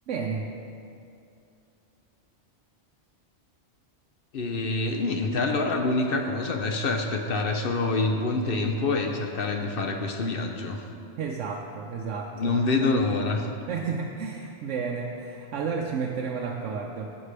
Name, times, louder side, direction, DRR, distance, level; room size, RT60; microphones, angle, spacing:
voice 1, 0.1-0.5 11.2-12.6 13.7-17.2, right 5 dB, 85° right, 1 dB, 0.9 m, -32 dB
voice 2, 4.3-10.8 12.3-13.5, left 3 dB, 55° left, 4 dB, 0.7 m, -26 dB
11.5 x 7.5 x 3.3 m, 2.6 s
omnidirectional pair, 1.2 m